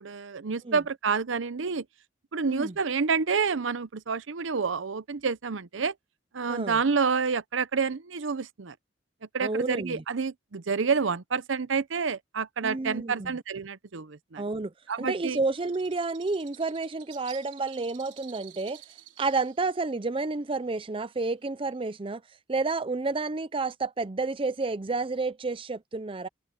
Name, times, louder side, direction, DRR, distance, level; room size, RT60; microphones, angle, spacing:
voice 1, 0.0-1.9 2.3-5.9 6.3-8.7 9.3-14.4 14.9-15.4, right 5 dB, 80° right, 0.7 m, -28 dB
voice 2, 6.5-6.8 9.4-10.0 12.6-13.3 14.4-14.7 15.0-18.8 19.2-22.2 22.5-26.3, right 3 dB, 30° right, 0.5 m, -30 dB
Bird, 14.9-22.1, right 13 dB, 65° right, 4.8 m, -52 dB
head